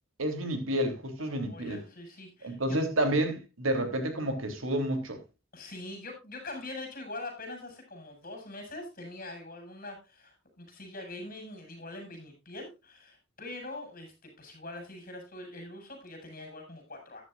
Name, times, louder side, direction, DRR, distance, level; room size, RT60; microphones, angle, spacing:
voice 1, 0.2-1.8 2.4-5.2, right 1 dB, 85° right, 3.3 m, -30 dB
voice 2, 1.2-2.8 5.5-17.2, left 2 dB, 45° left, 6.0 m, -43 dB
14.0 x 11.0 x 2.5 m
head